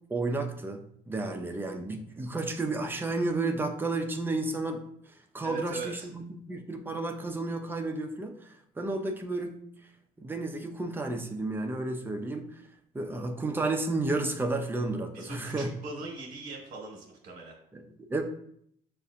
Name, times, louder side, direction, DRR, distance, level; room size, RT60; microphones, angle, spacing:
voice 1, 0.1-4.8 5.3-9.6 10.2-12.5 12.9-15.7 17.7-18.2, right 2 dB, 10° right, 4 dB, 0.5 m, -32 dB
voice 2, 5.4-6.1 15.1-17.5, right 3 dB, 55° right, -2 dB, 1.1 m, -40 dB
6.6 x 2.5 x 2.5 m, 0.70 s
cardioid pair, 110°, 17 cm